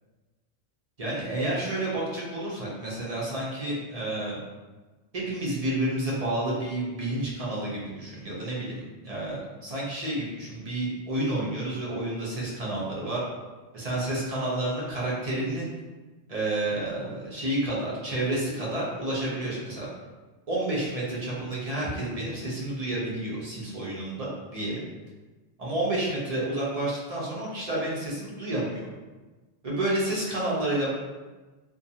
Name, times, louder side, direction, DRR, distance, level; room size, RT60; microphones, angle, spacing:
voice 1, 1.0-4.4 5.1-13.2 13.7-15.7 16.3-19.9 20.5-24.8 25.6-28.9 29.6-30.9, right 1 dB, 40° right, -6 dB, 0.6 m, -30 dB
2.5 x 2.2 x 2.7 m, 1.3 s
omnidirectional pair, 1.2 m